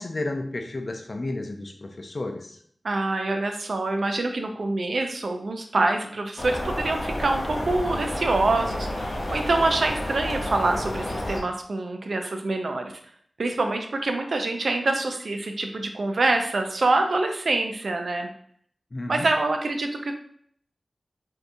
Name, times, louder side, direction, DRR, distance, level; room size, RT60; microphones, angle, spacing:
voice 1, 0.0-2.6 18.9-19.3, left 2 dB, 50° left, 4 dB, 0.5 m, -32 dB
voice 2, 2.8-12.9 13.4-18.3 19.1-20.1, right 2 dB, 70° right, 4 dB, 0.4 m, -25 dB
sound 1, 6.4-11.4, left 1 dB, 70° left, 0.8 m, -30 dB
3.4 x 2.7 x 2.6 m, 0.62 s
wide cardioid pair, 65°, 0 cm